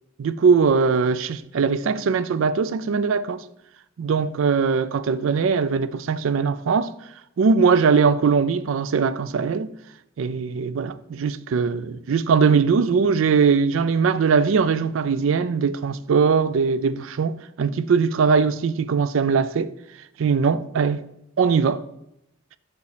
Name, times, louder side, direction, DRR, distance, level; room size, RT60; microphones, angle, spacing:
voice 1, 0.2-3.4 4.0-6.9 7.4-9.7 10.2-19.7 20.2-21.0 21.4-21.8, right 5 dB, 80° right, 0.4 m, -21 dB
5.4 x 5.2 x 4.9 m
head